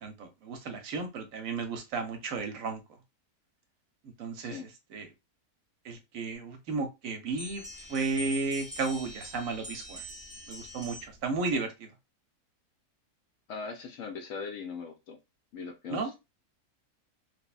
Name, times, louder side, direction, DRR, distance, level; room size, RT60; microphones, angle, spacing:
voice 1, 0.0-2.8 4.2-4.6 4.9-5.1 5.8-7.6 7.9-10.0 10.5-11.9 15.9-16.1, right 4 dB, 70° right, 0.9 m, -33 dB
sound 1, 7.4-11.3, left 1 dB, 5° right, 0.5 m, -44 dB
voice 2, 13.5-15.2 15.5-16.2, left 5 dB, 70° left, 0.9 m, -40 dB
3.2 x 2.0 x 2.3 m
omnidirectional pair, 1.6 m